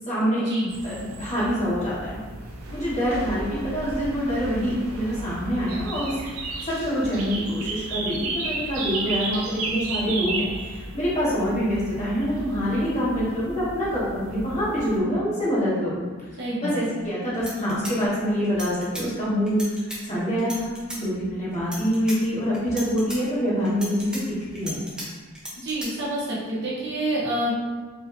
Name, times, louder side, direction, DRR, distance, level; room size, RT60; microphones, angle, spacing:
voice 1, 0.1-0.4 0.8-2.2 2.7-6.2 6.6-16.0 16.6-24.2 24.5-24.7, equal, 35° left, -9 dB, 1.3 m, -25 dB
sound 1, 0.7-15.0, right 2 dB, 80° right, 0.5 m, -34 dB
voice 2, 16.4-16.7 25.6-27.5, right 1 dB, 55° right, -6 dB, 0.9 m, -27 dB
sound 2, 17.0-17.1 17.3-19.1 19.5-20.0 20.4-21.0 21.5-22.2 22.5-23.2 23.7-25.1 25.4-25.9, equal, 5° right, 0.8 m, -36 dB
4.7 x 2.7 x 2.7 m, 1.4 s
head